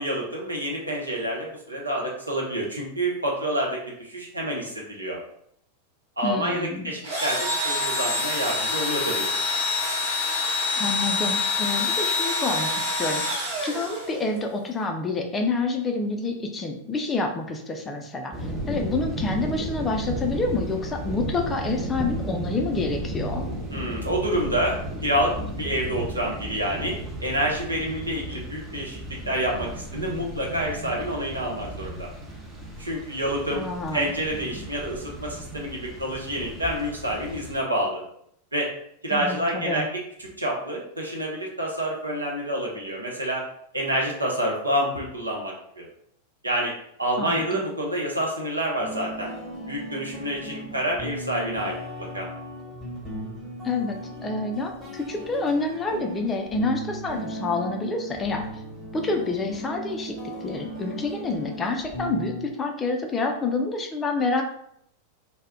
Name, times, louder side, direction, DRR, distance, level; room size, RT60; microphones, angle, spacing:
voice 1, 0.0-5.2 6.2-9.3 23.7-29.0 29.3-32.1 32.8-33.6 33.9-38.0 38.5-38.7 39.0-39.9 40.2-43.5 43.7-45.8 46.4-46.7 47.0-49.3 49.7-52.3, right 1 dB, 80° right, -2 dB, 0.6 m, -28 dB
voice 2, 6.2-6.9 10.8-13.2 13.6-18.3 18.7-23.4 33.5-34.1 39.1-39.9 47.2-47.6 53.6-54.0 54.2-58.5 58.9-60.2 60.4-64.4, left 3 dB, 20° left, 3 dB, 0.4 m, -28 dB
Engine / Drill, 7.0-14.4, left 3 dB, 65° right, 1.0 m, -26 dB
sound 1, 18.3-37.6, right 1 dB, 15° right, 0.6 m, -34 dB
sound 2, 48.8-62.4, right 1 dB, ahead, 1.0 m, -37 dB
2.2 x 2.0 x 3.5 m, 0.70 s
figure-of-eight pair, 90°, 0 cm